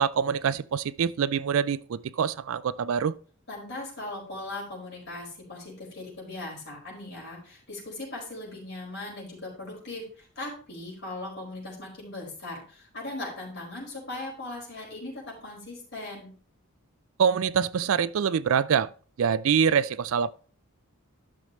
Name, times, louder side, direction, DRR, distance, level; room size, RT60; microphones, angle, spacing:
voice 1, 0.0-3.1 17.2-18.9 19.2-20.3, right 7 dB, 65° right, 0.4 m, -25 dB
voice 2, 3.5-16.3, left 2 dB, 50° left, 5.0 m, -39 dB
12.0 x 6.5 x 3.1 m
head